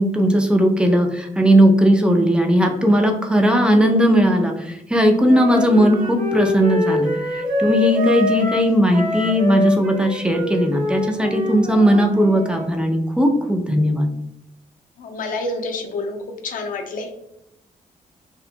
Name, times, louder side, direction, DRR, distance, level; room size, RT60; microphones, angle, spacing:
voice 1, 0.0-14.1, equal, 5° right, 3 dB, 0.4 m, -17 dB
Wind instrument woodwind instrument, 5.3-12.7, left 1 dB, 75° right, 0.7 m, -25 dB
voice 2, 15.0-16.2 16.4-17.1, left 2 dB, 70° left, 3 dB, 0.5 m, -28 dB
2.8 x 2.2 x 2.5 m, 0.82 s
cardioid pair, 110°, 14 cm